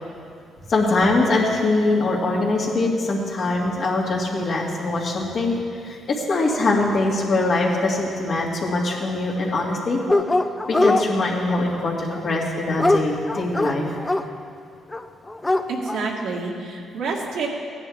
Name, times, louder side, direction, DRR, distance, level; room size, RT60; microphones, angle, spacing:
voice 1, 0.7-10.0 10.6-14.0, left 2 dB, 55° left, -3 dB, 2.2 m, -22 dB
Dog, 10.1-11.0 12.1-14.2 14.9-15.0 15.3-16.0, left 2 dB, 15° left, 0.5 m, -21 dB
voice 2, 15.7-17.5, right 4 dB, 80° right, -1 dB, 1.8 m, -28 dB
15.5 x 10.0 x 3.6 m, 2.3 s
cardioid pair, 90°, 0 cm